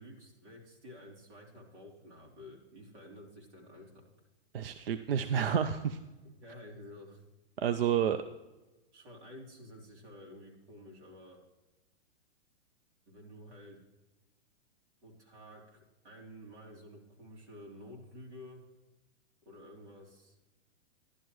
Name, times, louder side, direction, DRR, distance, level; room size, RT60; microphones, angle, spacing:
voice 1, 0.0-4.1 6.4-7.2 8.9-11.4 13.1-13.8 15.0-18.6 19.4-20.4, left 1 dB, 85° right, -2 dB, 3.8 m, -51 dB
voice 2, 4.5-6.0 7.6-8.2, right 8 dB, 55° right, 11 dB, 0.5 m, -30 dB
11.5 x 11.5 x 3.1 m, 1.1 s
hypercardioid pair, 175°, 34 cm